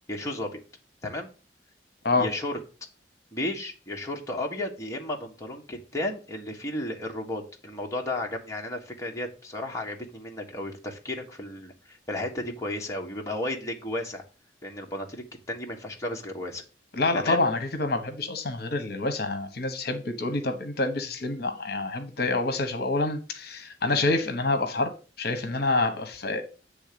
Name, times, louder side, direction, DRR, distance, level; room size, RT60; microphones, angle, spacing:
voice 1, 0.1-0.6 1.0-1.3 2.1-2.6 3.3-14.2 14.6-16.6 17.1-17.4, left 1 dB, 20° left, 1.4 m, -33 dB
voice 2, 16.9-24.9 25.2-26.4, left 2 dB, 60° left, 1.1 m, -27 dB
9.0 x 3.5 x 6.8 m
head